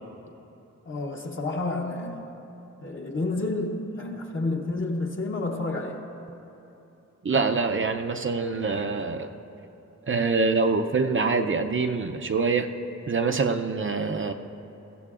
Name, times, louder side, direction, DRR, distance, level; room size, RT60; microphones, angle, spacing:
voice 1, 0.9-2.3 2.8-6.0, left 2 dB, 45° left, 0 dB, 0.9 m, -30 dB
voice 2, 7.2-9.3 10.1-12.7 13.1-14.3, right 4 dB, 45° right, 5 dB, 0.5 m, -25 dB
20.5 x 15.5 x 2.4 m, 3.0 s
wide cardioid pair, 125°, 29 cm